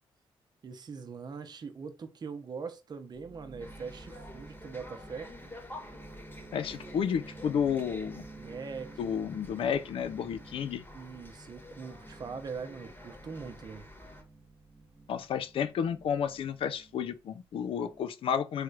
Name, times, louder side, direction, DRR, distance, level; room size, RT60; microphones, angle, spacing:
voice 1, 0.6-5.3 8.4-9.1 9.6-9.7 10.9-13.8, right 5 dB, 45° right, 0.7 m, -42 dB
sound 1, 3.1-10.8 11.9-12.5 13.1-13.7 14.0-18.0, right 3 dB, 10° right, 0.8 m, -51 dB
sound 2, 3.6-14.2, left 1 dB, 20° left, 1.2 m, -49 dB
voice 2, 6.5-8.2 9.0-10.8 15.1-18.6, left 8 dB, 65° left, 0.5 m, -31 dB
3.1 x 3.1 x 2.4 m
cardioid pair, 70°, 10 cm